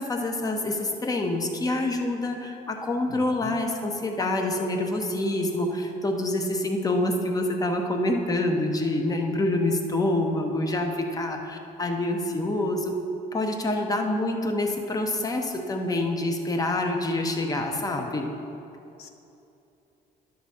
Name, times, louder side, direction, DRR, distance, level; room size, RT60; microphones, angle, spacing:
voice 1, 0.0-12.9 13.3-18.3, left 1 dB, 20° left, 4 dB, 0.9 m, -26 dB
voice 2, 3.1-3.6 19.0-19.1, left 8 dB, 80° left, 6 dB, 0.7 m, -43 dB
11.0 x 3.9 x 7.0 m, 2.8 s
cardioid pair, 110°, 17 cm